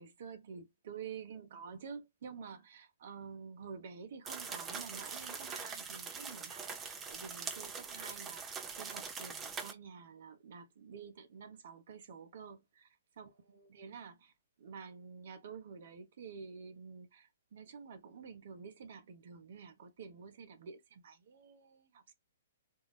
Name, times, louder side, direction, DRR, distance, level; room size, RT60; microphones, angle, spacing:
voice 1, 0.0-12.8 13.2-14.3 14.6-22.1, right 6 dB, 55° right, 1.1 m, -49 dB
sound 1, 4.3-9.7, right 5 dB, 15° right, 0.8 m, -43 dB
3.8 x 2.3 x 4.2 m
figure-of-eight pair, 120°, 0 cm